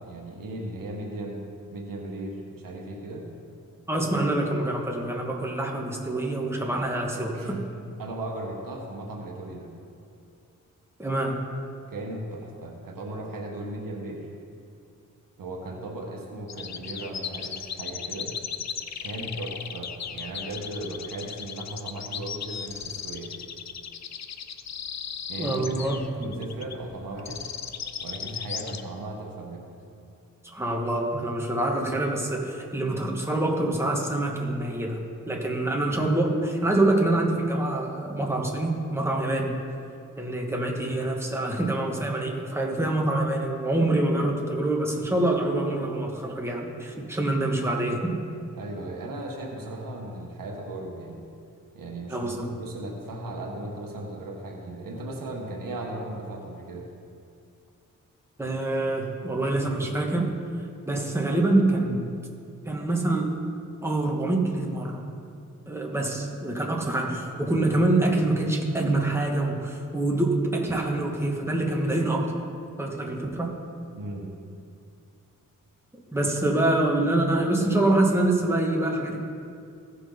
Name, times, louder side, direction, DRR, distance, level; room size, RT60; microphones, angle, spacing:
voice 1, 0.0-1.4 1.7-3.3 7.3-7.7 8.0-9.7 11.9-14.3 15.4-18.3 19.0-23.3 25.3-27.5 28.0-29.7 48.6-51.2 51.7-56.9 73.9-74.3, right 1 dB, 90° right, 0 dB, 1.4 m, -36 dB
voice 2, 3.9-7.6 11.0-11.4 25.4-26.3 30.5-39.6 40.2-48.2 52.1-52.5 58.4-60.3 60.9-62.0 62.7-63.3 63.8-65.0 65.7-72.4 72.8-73.6 76.1-79.2, right 2 dB, 10° right, -1 dB, 1.8 m, -25 dB
sound 1, 16.5-28.8, left 7 dB, 55° left, 0.6 m, -36 dB
16.5 x 5.8 x 3.9 m, 2.5 s
cardioid pair, 55°, 32 cm